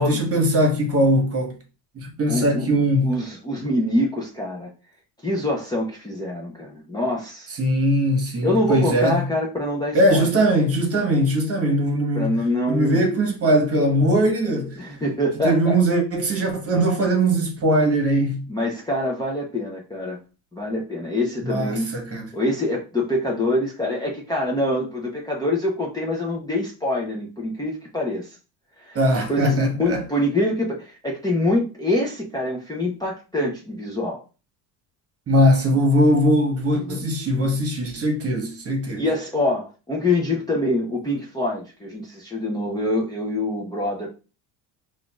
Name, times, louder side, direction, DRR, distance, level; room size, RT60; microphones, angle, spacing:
voice 1, 0.0-1.5 1.9-3.1 7.6-9.2 9.9-12.4 12.7-14.8 15.4-18.4 21.4-22.3 28.9-30.0 35.3-39.0, equal, 30° right, 1.2 m, -20 dB
voice 2, 2.3-4.7 5.2-7.5 8.4-10.3 12.1-13.0 14.8-15.8 18.5-20.2 20.5-28.4 28.8-34.2 36.7-37.0 39.0-44.1, left 1 dB, 10° left, 0.6 m, -25 dB
5.6 x 2.6 x 2.3 m
cardioid pair, 120°, 43 cm